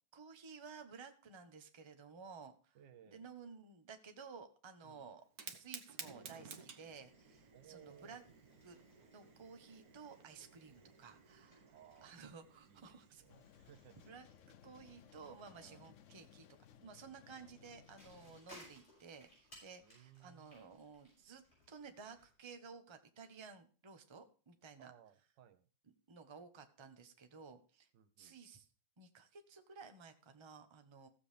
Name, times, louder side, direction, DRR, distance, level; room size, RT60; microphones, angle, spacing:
voice 1, 0.1-2.8 3.1-8.2 8.6-8.8 9.1-11.7 12.0-13.2 14.1-16.4 16.8-24.9 26.1-27.9 28.2-28.7 29.0-31.1, right 5 dB, 20° right, 7 dB, 0.8 m, -55 dB
voice 2, 2.7-3.3 4.8-5.2 7.5-8.6 11.6-12.2 12.6-14.0 14.4-14.6 15.5-15.9 17.4-17.9 19.8-20.6 24.8-25.7 27.9-28.4, right 9 dB, 75° right, 12 dB, 1.5 m, -62 dB
Fire, 5.2-14.1, right 6 dB, 55° right, 1.5 m, -56 dB
Bicycle, 6.8-22.3, left 1 dB, 35° left, 7.2 m, -65 dB
sound 1, 13.3-18.4, left 9 dB, 85° left, 0.6 m, -62 dB
15.5 x 7.5 x 3.3 m, 0.39 s
omnidirectional pair, 2.0 m